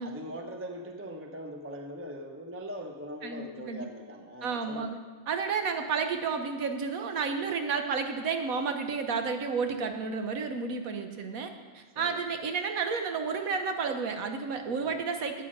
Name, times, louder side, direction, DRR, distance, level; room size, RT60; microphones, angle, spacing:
voice 1, 0.0-4.9 11.9-12.2 14.8-15.0, equal, 10° right, 3 dB, 0.7 m, -41 dB
voice 2, 3.2-3.9 4.4-5.0 5.3-15.4, right 5 dB, 85° right, 6 dB, 1.5 m, -31 dB
14.0 x 8.3 x 5.5 m, 1.4 s
omnidirectional pair, 1.4 m